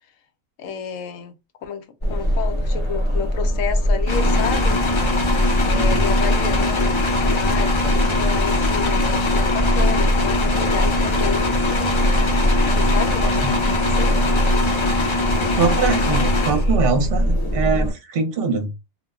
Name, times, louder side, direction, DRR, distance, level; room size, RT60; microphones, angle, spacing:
voice 1, 0.6-1.3 1.6-4.8 5.6-11.6 12.7-14.2, left 7 dB, 75° left, 0.9 m, -30 dB
sound 1, 2.0-17.9, equal, 25° left, 0.7 m, -22 dB
sound 2, 4.1-17.1, left 2 dB, 50° left, 0.3 m, -22 dB
voice 2, 5.7-6.1 13.2-13.5 15.4-18.7, right 5 dB, 55° right, 0.8 m, -23 dB
2.3 x 2.1 x 3.5 m
omnidirectional pair, 1.4 m